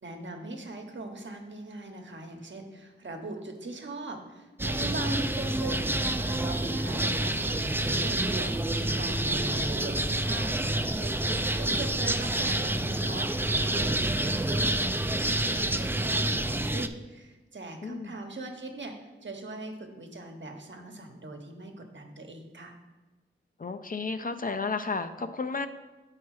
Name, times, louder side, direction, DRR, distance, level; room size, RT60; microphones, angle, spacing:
voice 1, 0.0-14.8 15.2-22.8, right 2 dB, 65° right, 4 dB, 1.1 m, -41 dB
sound 1, 4.6-16.9, right 1 dB, 10° right, 0.4 m, -28 dB
voice 2, 17.8-18.1 23.6-25.7, left 4 dB, 45° left, 9 dB, 0.5 m, -32 dB
7.2 x 4.7 x 4.8 m, 1.2 s
cardioid pair, 50°, 21 cm